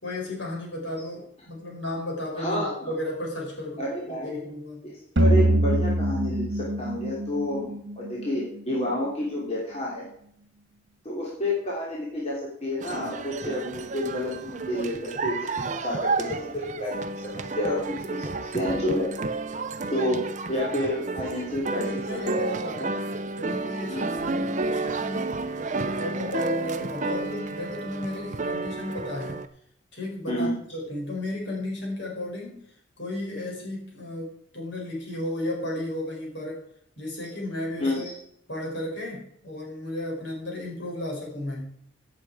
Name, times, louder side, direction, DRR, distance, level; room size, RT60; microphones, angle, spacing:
voice 1, 0.0-3.8 4.1-4.9 21.7-23.1 23.4-29.5 29.9-32.6 33.0-36.6 37.0-38.1 38.5-41.8, left 1 dB, 60° left, -2 dB, 5.2 m, -34 dB
voice 2, 2.4-2.9 3.8-4.4 4.9-10.1 11.0-17.0 17.3-19.1 19.9-22.7 23.9-24.2 30.3-30.6 37.8-38.1, left 1 dB, 30° left, -5 dB, 3.0 m, -30 dB
sound 1, 5.2-8.4, right 1 dB, 60° right, 1.5 m, -23 dB
sound 2, 12.8-29.5, right 3 dB, 35° right, 0.6 m, -31 dB
16.0 x 7.7 x 4.8 m, 0.68 s
head